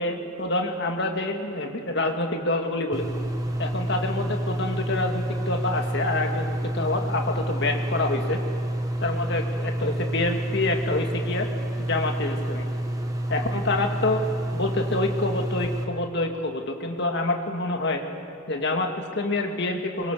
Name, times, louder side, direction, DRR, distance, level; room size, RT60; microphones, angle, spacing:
voice 1, 0.0-3.1 3.6-8.4 9.0-11.5 11.8-12.7 13.3-18.0 18.5-20.1, left 2 dB, 55° left, 4 dB, 2.2 m, -27 dB
sound 1, 2.9-15.8, right 1 dB, 15° right, 1.5 m, -29 dB
23.5 x 23.0 x 6.9 m, 2.8 s
head